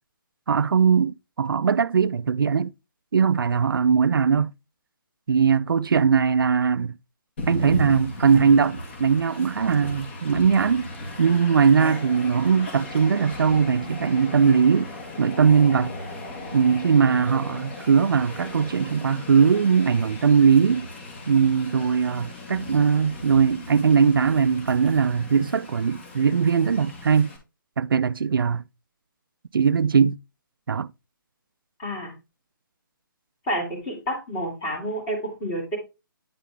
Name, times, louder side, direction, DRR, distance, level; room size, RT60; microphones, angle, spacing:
voice 1, 0.5-2.7 3.1-4.5 5.3-6.9 7.5-10.9 11.2-14.9 15.2-15.9 16.5-20.9 21.3-27.3 27.8-28.6 29.5-30.2 30.7-30.9, right 6 dB, 80° right, 0.5 m, -20 dB
Train, 7.4-27.4, left 2 dB, 30° left, 2.1 m, -37 dB
voice 2, 31.8-32.1 33.5-35.8, right 1 dB, 15° left, 2.2 m, -29 dB
9.5 x 4.8 x 3.4 m
hypercardioid pair, 175°, 11 cm